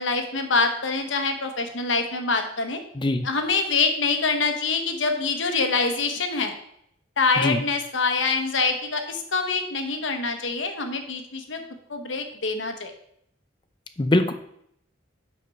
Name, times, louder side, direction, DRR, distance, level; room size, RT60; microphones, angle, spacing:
voice 1, 0.0-2.8 3.2-6.6 7.2-11.6 11.9-12.9, left 4 dB, 70° left, 6 dB, 1.1 m, -25 dB
voice 2, 3.0-3.3 7.4-7.6 14.0-14.3, left 1 dB, 25° left, 9 dB, 0.6 m, -22 dB
6.0 x 5.9 x 5.3 m, 0.71 s
head